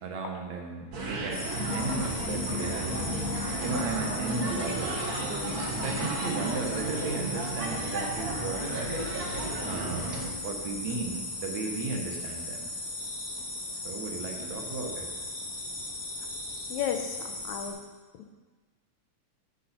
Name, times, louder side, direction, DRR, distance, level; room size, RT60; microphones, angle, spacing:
voice 1, 0.0-1.4 1.7-2.9 3.6-8.6 9.6-12.7 13.4-13.5 13.8-15.1, right 4 dB, 70° right, 1 dB, 2.6 m, -35 dB
sound 1, 0.9-10.3, right 2 dB, 45° right, 1.4 m, -33 dB
sound 2, 1.3-17.7, left 2 dB, 55° left, 4.4 m, -37 dB
voice 2, 16.7-17.8, left 9 dB, 75° left, 5 dB, 2.2 m, -33 dB
13.5 x 8.6 x 4.4 m, 1.3 s
omnidirectional pair, 3.3 m